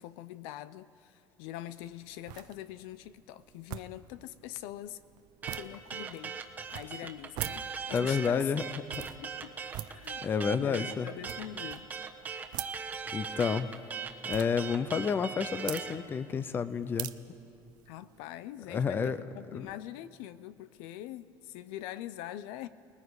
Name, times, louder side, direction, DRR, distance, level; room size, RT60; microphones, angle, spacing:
voice 1, 0.0-5.0 5.5-6.4 6.7-8.5 9.2-9.6 9.9-10.2 10.5-11.9 17.9-22.7, left 13 dB, 90° left, 15 dB, 0.6 m, -43 dB
sound 1, 1.7-18.2, right 14 dB, 60° right, 0.7 m, -46 dB
sound 2, 5.4-16.0, right 6 dB, 20° right, 1.2 m, -39 dB
voice 2, 7.9-9.0 10.2-11.1 13.1-13.7 14.2-17.1 18.7-19.2 19.5-19.7, left 6 dB, 25° left, 14 dB, 0.6 m, -30 dB
29.0 x 19.5 x 4.9 m, 2.7 s
cardioid pair, 150°, 8 cm